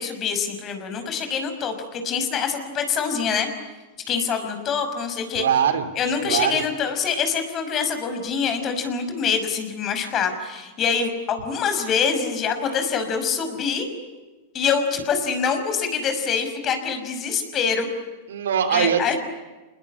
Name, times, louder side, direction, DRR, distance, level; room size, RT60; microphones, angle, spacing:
voice 1, 0.0-3.5 4.1-5.4 6.0-13.9 14.5-17.9 18.7-19.2, left 6 dB, 35° left, 7 dB, 5.8 m, -25 dB
voice 2, 5.3-5.9 6.2-6.6 18.3-19.1, right 8 dB, 80° right, 9 dB, 3.1 m, -22 dB
27.5 x 21.0 x 9.9 m, 1.2 s
hypercardioid pair, 110°, 0 cm